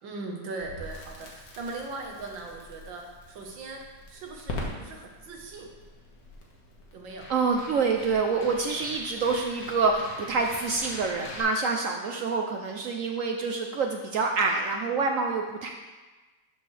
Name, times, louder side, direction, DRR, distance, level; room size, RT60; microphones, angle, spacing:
voice 1, 0.0-5.7 6.9-7.3, right 3 dB, 90° right, 1 dB, 1.9 m, -39 dB
Crackle, 0.6-11.4, left 1 dB, 55° left, 1.7 m, -43 dB
voice 2, 7.3-15.7, right 4 dB, 70° right, 3 dB, 0.7 m, -27 dB
12.5 x 5.5 x 3.3 m, 1.2 s
omnidirectional pair, 2.0 m